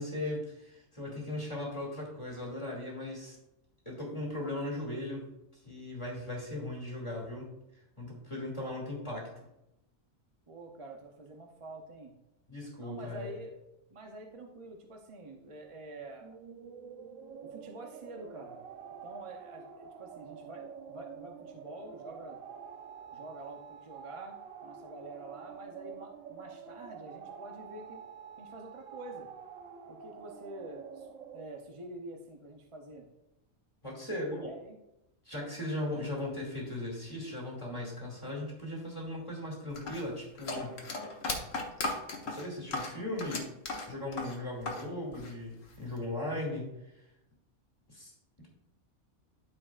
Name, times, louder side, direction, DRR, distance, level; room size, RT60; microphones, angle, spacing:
voice 1, 0.0-3.4 3.9-7.5 8.0-9.3 12.5-13.3 33.8-34.5 35.2-40.8 42.2-43.5 43.9-46.9 47.9-48.1 48.4-48.5, left 1 dB, 20° left, -2 dB, 2.5 m, -38 dB
voice 2, 10.5-12.1 12.8-13.6 13.9-16.4 17.5-18.6 19.0-22.4 23.1-28.0 28.4-29.3 29.9-31.1 31.3-33.1 34.1-34.8, right 2 dB, 30° right, 2 dB, 0.7 m, -47 dB
sound 1, 16.2-31.5, right 7 dB, 75° right, 1.1 m, -48 dB
sound 2, 39.8-44.9 45.1-46.0, left 2 dB, 65° left, 1.5 m, -36 dB
13.0 x 5.1 x 2.5 m, 0.87 s
omnidirectional pair, 1.4 m